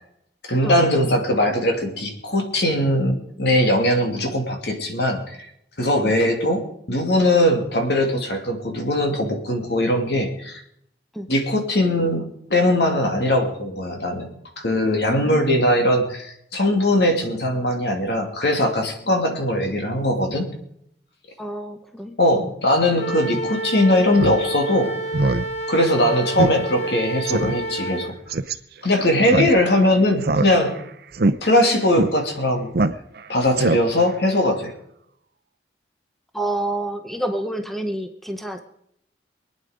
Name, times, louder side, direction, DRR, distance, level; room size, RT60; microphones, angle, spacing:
voice 1, 0.5-5.5 5.8-10.6 11.3-12.2 12.5-14.3 14.6-20.5 22.2-24.9 25.7-28.1 28.8-30.7 31.4-32.7 33.3-34.7, left 1 dB, 65° left, 3 dB, 2.7 m, -20 dB
voice 2, 14.9-15.8 21.4-22.5 36.3-38.6, right 1 dB, ahead, 6 dB, 0.8 m, -29 dB
Wind instrument woodwind instrument, 23.0-28.1, right 2 dB, 40° left, 2.5 m, -29 dB
Speech synthesizer, 24.1-24.4 24.7-24.8 25.1-25.5 25.8-25.9 26.4-26.5 26.8-26.9 27.3-27.5 28.3-28.5 29.2-29.8 30.2-30.8 31.1-31.3 31.9-32.1 32.7-33.2 33.5-34.1, right 2 dB, 60° right, 0.7 m, -21 dB
23.5 x 9.4 x 5.1 m, 0.74 s
head